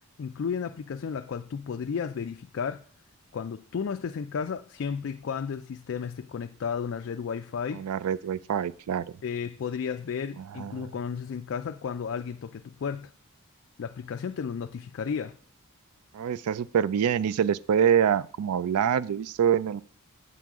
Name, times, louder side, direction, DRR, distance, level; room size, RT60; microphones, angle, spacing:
voice 1, 0.2-2.8 3.3-7.8 9.2-13.1 13.8-15.4, left 6 dB, 55° left, 0.3 m, -33 dB
voice 2, 7.7-9.0 10.4-10.9 16.1-19.8, right 8 dB, 85° right, 0.4 m, -25 dB
8.1 x 7.5 x 3.6 m
head